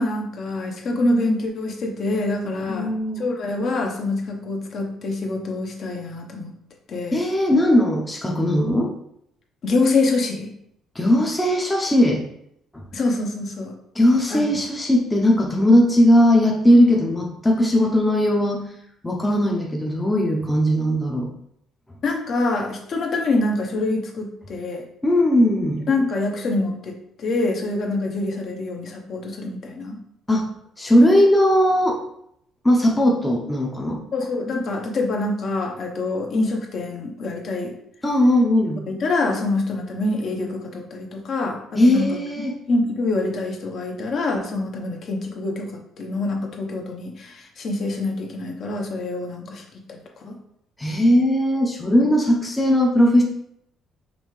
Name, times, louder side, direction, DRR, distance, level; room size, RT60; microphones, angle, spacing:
voice 1, 0.0-6.5 6.9-7.2 9.6-10.5 12.9-13.7 14.3-14.6 22.0-24.8 25.9-30.0 34.1-37.7 38.7-41.6 41.9-42.2 42.7-45.7 46.0-49.6 49.9-50.4, left 2 dB, 45° left, 2 dB, 0.8 m, -25 dB
voice 2, 2.7-3.2 7.1-8.9 10.9-12.2 13.9-18.6 19.0-21.3 25.0-25.9 30.3-30.4 30.8-32.0 32.6-34.0 38.0-38.8 41.7-42.5 50.8-53.2, equal, 10° left, -1 dB, 0.6 m, -18 dB
5.3 x 3.2 x 3.1 m, 0.73 s
cardioid pair, 145°, 0 cm